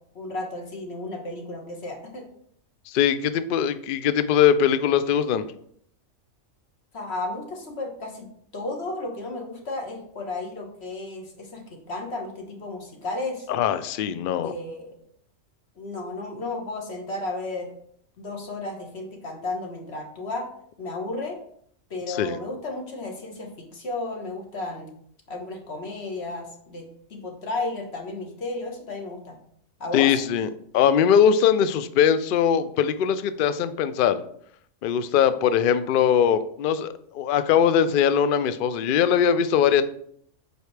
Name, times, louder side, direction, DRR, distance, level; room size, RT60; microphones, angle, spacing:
voice 1, 0.1-2.3 6.9-8.3 8.5-13.5 14.4-14.9 15.8-17.7 18.2-20.5 20.8-21.4 21.9-24.9 25.3-26.8 27.1-29.4 29.8-30.2, left 2 dB, 50° left, 1 dB, 1.5 m, -33 dB
voice 2, 2.9-5.5 13.5-14.5 22.1-22.4 29.9-30.5 30.7-34.2 34.8-39.8, left 8 dB, 75° left, 13 dB, 0.5 m, -21 dB
7.9 x 4.6 x 3.3 m, 0.65 s
omnidirectional pair, 1.4 m